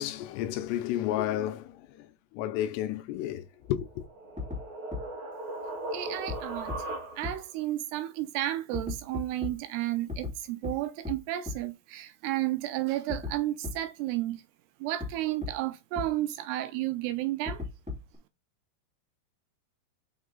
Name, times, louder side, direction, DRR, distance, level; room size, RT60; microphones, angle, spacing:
voice 1, 0.0-4.0, left 12 dB, 80° left, 2.7 m, -32 dB
sound 1, 3.7-7.5, right 2 dB, 50° right, 1.6 m, -38 dB
sound 2, 4.4-4.6 4.9-5.0 6.3-6.4 6.7-6.8 7.2-7.3 8.7-9.5 10.1-10.3 10.6-10.7 11.0-11.1 11.5-11.6 13.1-13.3 13.6-13.7 15.0-15.1 15.4-15.5 16.0-16.1 17.5-18.2, left 4 dB, 5° right, 0.8 m, -34 dB
voice 2, 5.9-6.7 7.2-14.4 14.8-17.6, right 14 dB, 80° right, 2.5 m, -32 dB
6.3 x 5.5 x 3.9 m
omnidirectional pair, 5.1 m